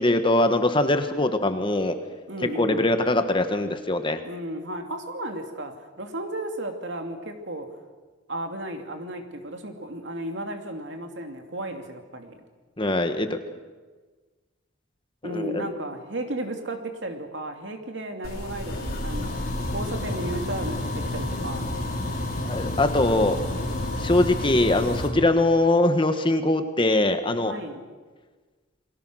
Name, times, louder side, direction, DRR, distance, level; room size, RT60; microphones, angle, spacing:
voice 1, 0.0-2.0 2.5-4.2 12.8-13.4 15.2-15.7 22.5-23.4 24.0-27.5, left 2 dB, 25° left, 8 dB, 1.4 m, -22 dB
voice 2, 2.3-2.9 4.2-7.7 8.3-12.4 15.2-19.4 19.7-21.8 27.4-27.8, right 1 dB, 65° right, 5 dB, 2.7 m, -34 dB
sound 1, 18.2-25.1, left 1 dB, 50° left, 5.4 m, -30 dB
29.0 x 21.5 x 6.4 m, 1.4 s
head